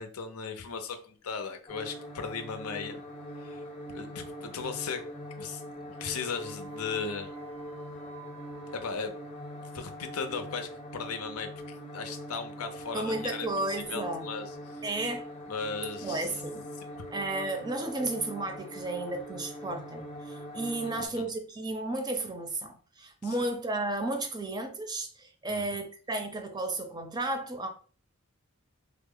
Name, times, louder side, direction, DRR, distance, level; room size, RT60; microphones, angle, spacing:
voice 1, 0.0-3.1 3.4-3.6 3.9-5.0 5.4-5.6 5.9-7.3 8.7-9.1 9.6-13.5 13.8-14.8 15.5-16.3 20.9-21.3 25.5-25.8, left 5 dB, 85° left, 0.6 m, -37 dB
sound 1, 1.7-21.1, equal, 25° left, 0.7 m, -42 dB
sound 2, 6.3-8.9, right 8 dB, 80° right, 0.5 m, -53 dB
voice 2, 12.9-14.3 14.8-15.2 16.0-16.6 17.1-27.7, right 2 dB, 20° right, 0.5 m, -33 dB
3.4 x 2.0 x 3.7 m
head